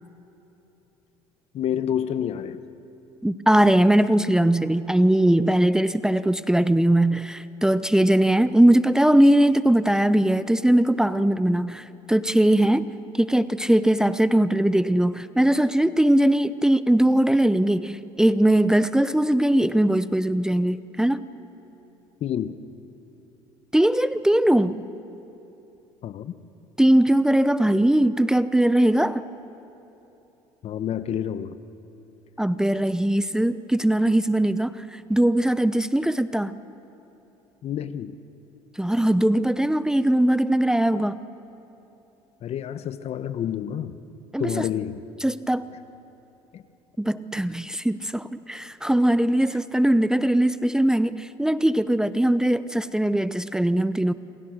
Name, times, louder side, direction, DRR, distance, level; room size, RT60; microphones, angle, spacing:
voice 1, 1.5-2.6 22.2-22.6 26.0-26.3 30.6-31.6 37.6-38.2 42.4-44.0 44.4-45.0 46.5-46.6, left 9 dB, 55° left, 13 dB, 1.1 m, -28 dB
voice 2, 3.2-12.9 13.1-21.2 23.7-24.8 26.8-29.2 32.4-34.8 35.1-36.5 38.8-41.2 44.3-44.6 45.2-45.6 47.0-54.1, right 1 dB, 5° right, 14 dB, 0.7 m, -20 dB
27.5 x 27.5 x 6.5 m, 3.0 s
supercardioid pair, 80°, 13 cm